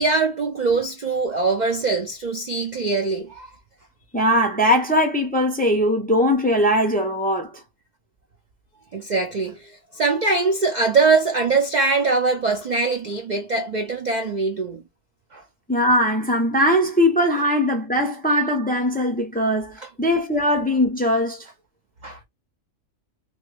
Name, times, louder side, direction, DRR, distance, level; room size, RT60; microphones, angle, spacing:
voice 1, 0.0-3.5 8.9-14.8 15.3-15.4 19.8-19.9 22.0-22.2, right 4 dB, 55° right, 0.4 m, -22 dB
voice 2, 4.1-7.5 15.7-21.4, equal, 10° left, 0.5 m, -20 dB
3.2 x 2.0 x 3.3 m
omnidirectional pair, 1.4 m